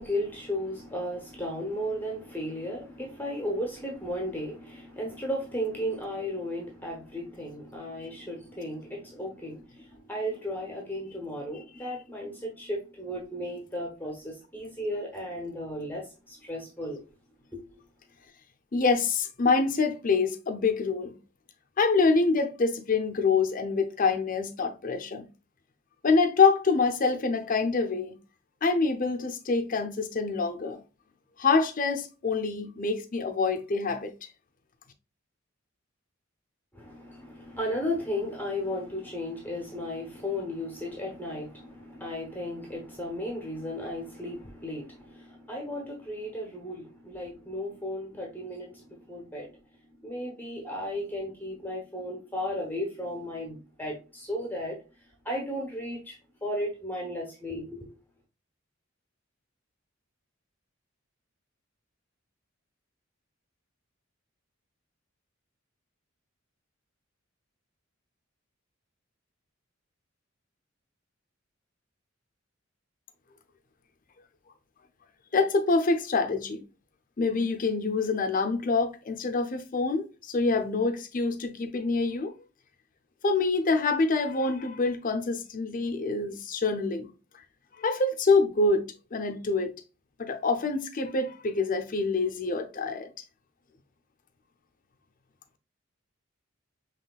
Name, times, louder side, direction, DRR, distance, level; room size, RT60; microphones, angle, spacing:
voice 1, 0.0-17.0 17.5-17.6 36.7-49.5 50.0-54.8 55.2-57.9, equal, 10° left, 1.0 m, -35 dB
voice 2, 18.7-21.2 21.8-25.3 26.0-28.2 28.6-30.8 31.4-34.1 75.3-76.6 77.2-82.3 83.2-87.1 87.8-89.7 90.2-93.1, left 4 dB, 40° left, 0.7 m, -26 dB
5.7 x 3.2 x 2.3 m
head